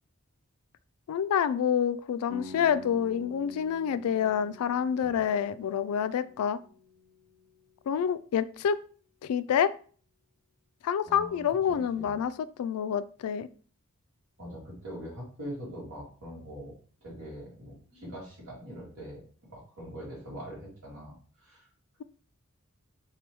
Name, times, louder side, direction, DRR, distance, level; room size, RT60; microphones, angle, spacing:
voice 1, 1.1-6.6 7.9-8.8 9.2-9.7 10.8-12.3 12.6-13.5, left 8 dB, 80° left, 16 dB, 0.3 m, -27 dB
sound 1, 2.3-8.1, left 2 dB, 15° right, 1.0 m, -49 dB
voice 2, 11.1-11.4 11.7-12.2 14.4-19.2 19.5-21.7, equal, 80° right, -4 dB, 2.0 m, -43 dB
3.4 x 3.3 x 3.0 m, 0.42 s
head